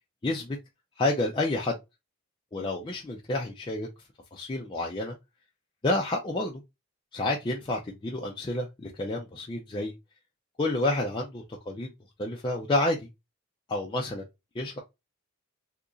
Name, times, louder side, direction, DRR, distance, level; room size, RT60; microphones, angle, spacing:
voice 1, 0.2-0.6 1.0-1.8 2.5-3.9 4.3-5.1 5.8-6.6 7.1-9.9 10.6-11.9 12.2-13.1 13.7-14.2 14.5-14.8, left 2 dB, 20° left, 0.4 m, -29 dB
2.9 x 2.4 x 3.7 m
head